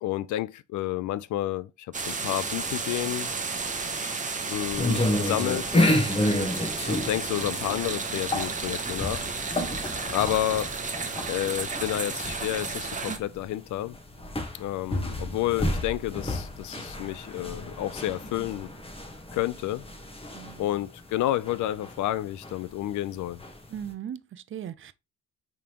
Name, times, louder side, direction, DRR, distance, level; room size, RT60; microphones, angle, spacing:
voice 1, 0.0-3.3 4.5-5.7 6.9-9.2 10.1-10.7 11.3-14.0 14.5-18.7 19.3-19.8 20.6-23.4, left 14 dB, 75° left, 0.5 m, -30 dB
sound 1, 1.9-13.2, right 4 dB, 25° right, 1.0 m, -32 dB
sound 2, 4.7-23.9, left 1 dB, 20° left, 1.3 m, -31 dB
voice 2, 20.3-20.7 23.7-24.9, right 9 dB, 45° right, 0.5 m, -39 dB
5.0 x 3.5 x 2.9 m
cardioid pair, 90°, 30 cm